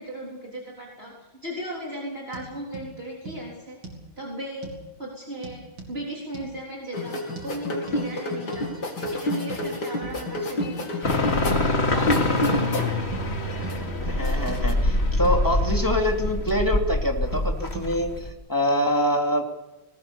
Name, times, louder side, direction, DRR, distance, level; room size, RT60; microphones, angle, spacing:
voice 1, 0.0-3.8 4.2-4.7 5.0-8.8 9.1-11.3 11.9-12.8, right 1 dB, 30° right, -3 dB, 3.9 m, -36 dB
sound 1, 2.3-2.5 2.7-2.9 3.3-3.4 3.8-4.0 4.6-4.8 5.4-5.9 6.3-6.5 7.4-7.5 7.9-8.0 8.5-8.7 9.0-9.2 9.5-9.7 10.0-10.2 10.6-10.7 11.0-11.2 11.5-11.7 12.0-12.2 12.5-12.6 13.1-13.3 13.6-13.8 14.1-14.2 14.5-14.6 14.9-15.4 15.7-15.8 16.2-16.7 17.3-17.5 17.7-17.9, right 3 dB, 75° right, 5.2 m, -37 dB
sound 2, 6.9-13.1 13.4-14.7, left 1 dB, 55° left, 3.3 m, -29 dB
sound 3, 11.0-18.3, left 2 dB, 30° left, 2.6 m, -25 dB
voice 2, 14.0-19.4, equal, 10° left, 2 dB, 2.7 m, -25 dB
20.0 x 19.5 x 7.0 m, 1.0 s
omnidirectional pair, 2.2 m